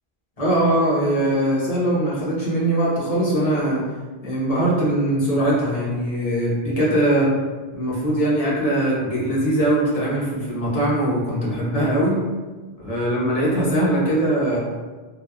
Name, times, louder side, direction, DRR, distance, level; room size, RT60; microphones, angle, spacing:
voice 1, 0.4-3.8 4.2-7.3 7.7-12.2 12.8-14.6, right 1 dB, 40° left, -7 dB, 0.7 m, -21 dB
2.9 x 2.1 x 2.3 m, 1.3 s
omnidirectional pair, 1.1 m